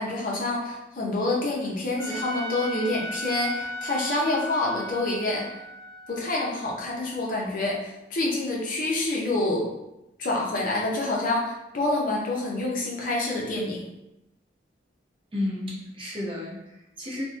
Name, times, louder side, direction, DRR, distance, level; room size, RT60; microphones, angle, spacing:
voice 1, 0.0-5.5 6.1-9.6 10.2-13.8, left 2 dB, 50° left, -3 dB, 0.5 m, -27 dB
Trumpet, 2.0-7.2, left 1 dB, 85° right, 0.6 m, -37 dB
voice 2, 15.3-17.2, left 1 dB, 30° right, -6 dB, 0.6 m, -32 dB
2.6 x 2.1 x 2.4 m, 0.91 s
head